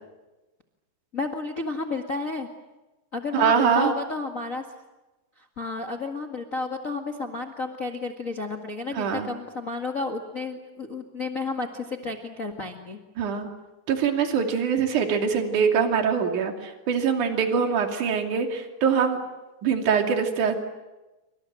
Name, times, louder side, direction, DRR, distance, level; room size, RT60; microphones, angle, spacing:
voice 1, 1.1-2.5 3.1-4.6 5.6-13.0, left 3 dB, 65° left, 3 dB, 0.8 m, -31 dB
voice 2, 3.3-3.9 8.9-9.3 13.2-13.5 13.9-19.2 19.6-20.6, right 6 dB, 50° right, 4 dB, 3.8 m, -23 dB
28.5 x 25.5 x 7.6 m, 1.1 s
omnidirectional pair, 4.9 m